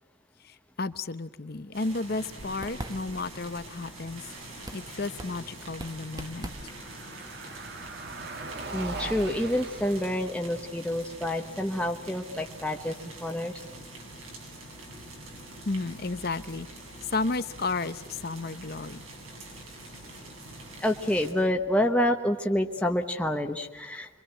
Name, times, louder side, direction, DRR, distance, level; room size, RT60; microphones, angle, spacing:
voice 1, 0.4-4.2 4.7-6.5 15.6-16.7 17.0-19.1, left 3 dB, 50° left, 13 dB, 0.9 m, -33 dB
sound 1, 1.7-21.3, right 1 dB, 85° right, 7.7 m, -45 dB
sound 2, 2.2-8.4, right 1 dB, 20° right, 1.1 m, -45 dB
Car passing by, 5.9-22.0, right 3 dB, 50° right, 1.6 m, -45 dB
voice 2, 8.7-13.6 20.8-24.2, left 1 dB, 5° left, 2 dB, 1.0 m, -28 dB
26.5 x 24.0 x 7.9 m, 1.2 s
head